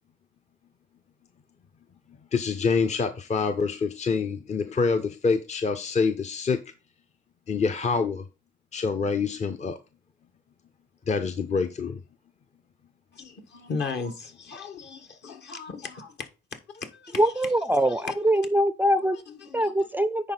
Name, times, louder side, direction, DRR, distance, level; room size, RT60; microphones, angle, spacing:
voice 1, 2.3-6.6 7.5-8.2 8.7-9.8 11.1-12.0, left 5 dB, 35° left, 0.6 m, -26 dB
voice 2, 13.1-17.5 17.8-18.3 19.3-19.9, left 4 dB, 60° left, 1.6 m, -37 dB
voice 3, 17.2-19.2 19.5-20.3, right 1 dB, 10° right, 0.4 m, -23 dB
10.0 x 4.4 x 4.0 m
cardioid pair, 90°, 20 cm